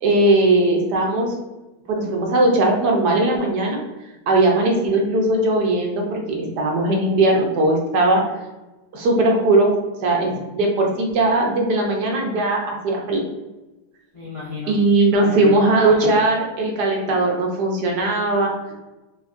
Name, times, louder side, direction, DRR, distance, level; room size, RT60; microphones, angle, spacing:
voice 1, 0.0-1.3 1.9-3.8 4.3-8.2 8.9-9.7 10.0-13.2 14.7-18.5, right 2 dB, 75° right, 0 dB, 1.3 m, -19 dB
voice 2, 14.1-14.8 15.1-16.1, left 3 dB, 55° left, -7 dB, 0.3 m, -31 dB
4.6 x 2.3 x 2.4 m, 1.1 s
omnidirectional pair, 1.8 m